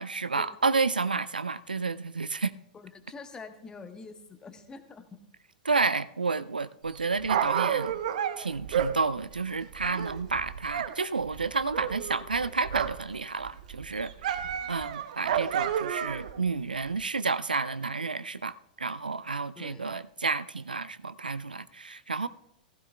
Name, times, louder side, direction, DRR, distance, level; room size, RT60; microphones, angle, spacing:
voice 1, 0.0-2.5 5.6-8.0 8.4-14.4 14.7-22.3, right 4 dB, 80° right, 0.4 m, -30 dB
voice 2, 2.7-5.2 19.6-19.8, left 4 dB, 15° left, 1.1 m, -46 dB
Dog, 6.9-10.9 11.2-13.1 13.4-16.4 17.0-17.1, right 9 dB, 55° right, 0.7 m, -31 dB
16.0 x 15.0 x 2.2 m
figure-of-eight pair, 100°, 5 cm